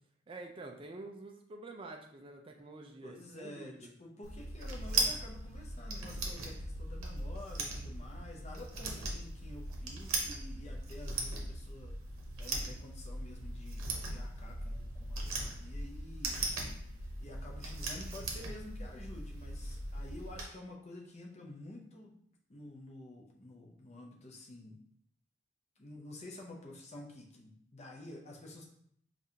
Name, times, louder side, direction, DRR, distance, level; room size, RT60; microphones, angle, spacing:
voice 1, 0.3-3.8, right 2 dB, 25° right, 1 dB, 0.3 m, -48 dB
voice 2, 3.0-11.9 12.4-16.4 16.7-22.2 22.5-24.8 25.8-28.7, left 1 dB, 30° left, 0 dB, 0.6 m, -50 dB
sound 1, 4.2-20.4, right 2 dB, 75° right, 0.8 m, -39 dB
5.2 x 2.4 x 2.7 m, 0.68 s
head